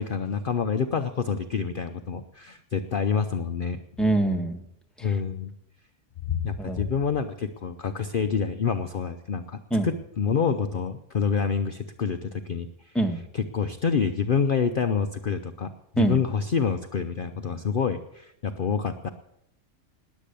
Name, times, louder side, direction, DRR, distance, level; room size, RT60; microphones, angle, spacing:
voice 1, 0.0-3.8 5.0-5.5 6.3-13.0 13.3-19.1, left 6 dB, 50° left, 8 dB, 0.8 m, -27 dB
voice 2, 4.0-4.6 5.0-5.1 6.6-6.9 9.7-9.9 12.9-13.2 16.0-16.2, right 2 dB, ahead, 4 dB, 1.4 m, -24 dB
20.5 x 8.4 x 6.8 m, 0.78 s
omnidirectional pair, 1.3 m